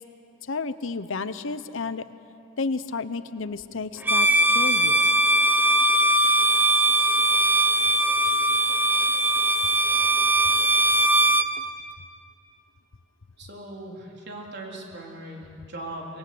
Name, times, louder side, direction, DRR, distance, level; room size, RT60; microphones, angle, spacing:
voice 1, 0.4-2.1 2.6-5.1, left 4 dB, 65° left, 13 dB, 0.8 m, -31 dB
Bowed string instrument, 4.0-11.5, right 1 dB, 10° right, 0.9 m, -20 dB
voice 2, 13.4-16.2, right 1 dB, 55° right, -1 dB, 3.9 m, -39 dB
24.5 x 22.5 x 7.9 m, 2.6 s
head